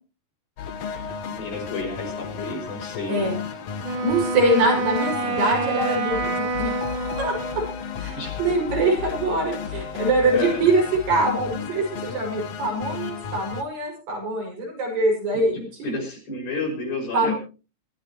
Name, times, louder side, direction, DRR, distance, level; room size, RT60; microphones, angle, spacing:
sound 1, 0.6-13.6, left 7 dB, 60° left, 2.1 m, -34 dB
voice 1, 0.9-3.4 8.1-8.4 10.3-10.7 15.3-17.3, left 3 dB, 90° left, 1 dB, 7.5 m, -31 dB
Wind instrument woodwind instrument, 3.8-8.0, right 2 dB, 55° right, 1.4 m, -28 dB
voice 2, 4.0-7.6 8.0-10.8 11.1-15.9 17.1-17.3, right 2 dB, 75° right, 0 dB, 7.9 m, -24 dB
24.0 x 13.5 x 3.0 m, 0.34 s
omnidirectional pair, 4.0 m